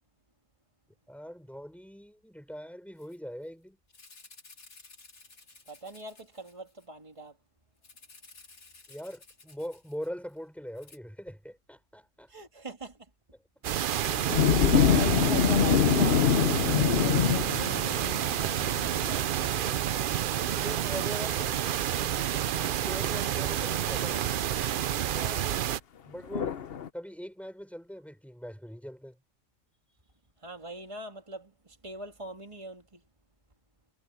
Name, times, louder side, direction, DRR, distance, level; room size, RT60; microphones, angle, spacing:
voice 1, 1.1-3.8 8.9-12.3 13.3-13.4 20.6-21.6 22.6-24.2 25.1-25.4 26.1-26.6 26.9-29.2, equal, ahead, 5.9 m, -42 dB
Rattle (instrument), 3.0-3.2 3.4-3.5 3.9-6.9 7.8-10.4 10.8-11.0, left 3 dB, 80° left, 3.5 m, -55 dB
voice 2, 5.7-7.4 12.3-13.1 14.7-19.5 25.1-25.5 30.4-33.0, right 2 dB, 20° right, 2.7 m, -43 dB
sound 1, 13.6-25.8, right 10 dB, 65° right, 0.5 m, -29 dB
sound 2, 14.0-19.8 26.3-26.9, left 8 dB, 50° left, 0.9 m, -25 dB
omnidirectional pair, 1.5 m